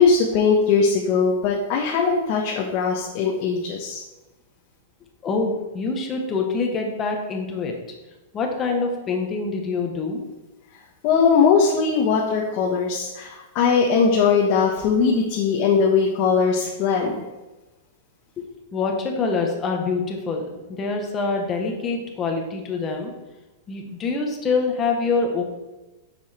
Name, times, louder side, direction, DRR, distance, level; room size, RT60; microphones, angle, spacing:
voice 1, 0.0-4.0 11.0-17.1, left 5 dB, 35° left, -1 dB, 1.3 m, -20 dB
voice 2, 5.2-7.8 8.3-10.2 18.4-23.1 23.7-25.4, left 4 dB, 20° left, 2 dB, 1.5 m, -25 dB
9.4 x 7.3 x 4.5 m, 1.1 s
supercardioid pair, 165°, 0 cm